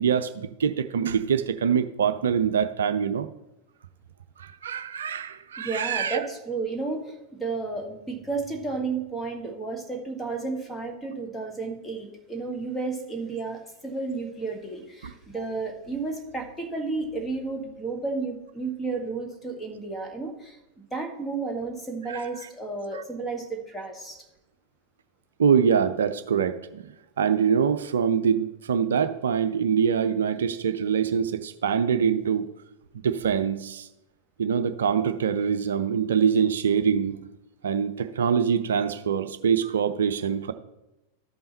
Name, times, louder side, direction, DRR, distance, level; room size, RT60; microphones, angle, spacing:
voice 1, 0.0-3.3 4.4-6.2 15.0-15.1 15.4-15.5 22.1-22.2 22.9-23.0 25.4-26.9 27.2-32.5 33.0-33.9 34.4-37.2 37.6-40.5, right 7 dB, 65° right, 10 dB, 0.4 m, -24 dB
voice 2, 5.6-20.6 20.9-24.2, right 3 dB, 10° left, 3 dB, 1.7 m, -32 dB
12.5 x 5.5 x 4.2 m, 0.97 s
figure-of-eight pair, 90°, 0 cm